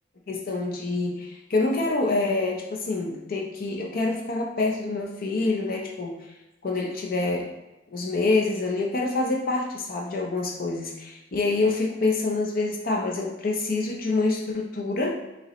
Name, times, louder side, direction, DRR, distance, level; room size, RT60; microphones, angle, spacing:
voice 1, 0.3-6.1 6.6-7.5 7.9-15.2, left 3 dB, 50° left, 0 dB, 0.5 m, -26 dB
5.3 x 2.9 x 3.1 m, 0.98 s
head